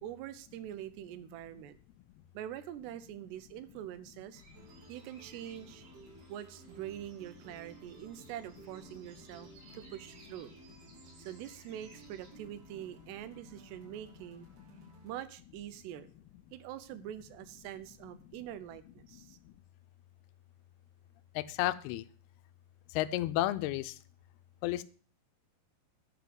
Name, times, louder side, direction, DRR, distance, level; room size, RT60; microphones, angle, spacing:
voice 1, 0.0-1.8 2.3-4.4 4.9-5.8 6.3-9.5 9.7-10.5 11.2-14.5 15.0-16.1 16.5-19.4, right 11 dB, 85° right, 14 dB, 3.0 m, -44 dB
sound 1, 4.3-12.3, right 2 dB, 50° right, 4.9 m, -60 dB
sound 2, 4.5-15.2, right 4 dB, 65° right, 6.1 m, -57 dB
voice 2, 21.4-22.0 23.0-23.9 24.6-24.8, left 15 dB, 80° left, 14 dB, 2.5 m, -31 dB
11.5 x 5.1 x 7.8 m, 0.41 s
omnidirectional pair, 4.7 m